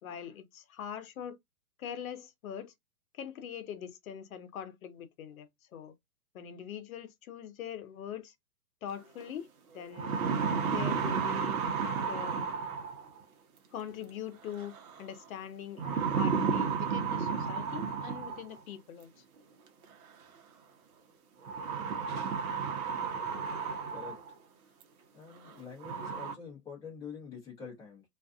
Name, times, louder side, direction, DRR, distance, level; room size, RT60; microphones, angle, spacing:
voice 1, 0.0-1.4 1.8-2.7 3.1-5.9 6.3-8.3 8.8-10.2 10.7-11.6 12.0-12.5 13.7-19.2, left 9 dB, 60° left, 0.8 m, -42 dB
sound 1, 9.2-9.3 9.8-13.2 14.6-15.0 15.8-18.6 19.8-19.9 21.4-24.3 24.8-24.9 25.4-25.5 25.8-26.3, right 6 dB, 60° right, 0.9 m, -32 dB
voice 2, 25.1-28.0, left 6 dB, 5° left, 0.6 m, -46 dB
2.5 x 2.3 x 2.4 m
hypercardioid pair, 125°, 48 cm